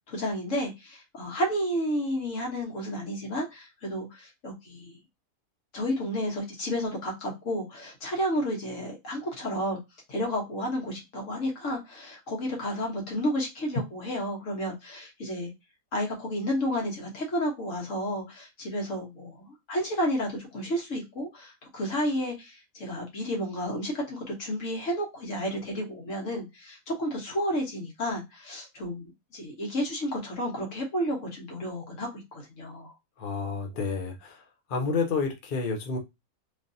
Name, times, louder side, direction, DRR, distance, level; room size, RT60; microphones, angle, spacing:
voice 1, 0.1-5.0 5.7-9.8 10.1-15.5 15.9-32.9, equal, 65° left, 1.5 m, -31 dB
voice 2, 33.2-34.4 34.7-36.0, left 4 dB, 50° left, 0.7 m, -29 dB
3.2 x 2.4 x 2.6 m
omnidirectional pair, 1.5 m